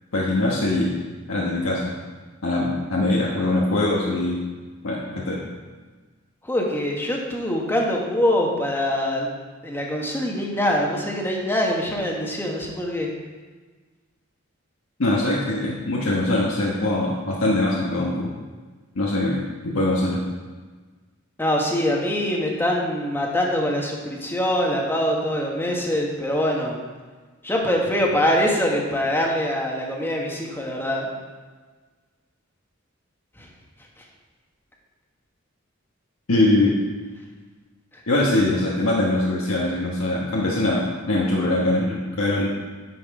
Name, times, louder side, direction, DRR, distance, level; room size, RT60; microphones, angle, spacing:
voice 1, 0.1-0.9 1.3-1.9 2.4-4.4 4.8-5.4 15.0-18.3 18.9-20.2 36.3-36.8 38.1-42.5, left 2 dB, 90° left, -4 dB, 1.2 m, -22 dB
voice 2, 6.4-9.3 9.6-13.1 21.4-26.8 27.4-31.1, left 1 dB, 10° left, -1 dB, 1.3 m, -23 dB
10.0 x 6.0 x 4.8 m, 1.4 s
head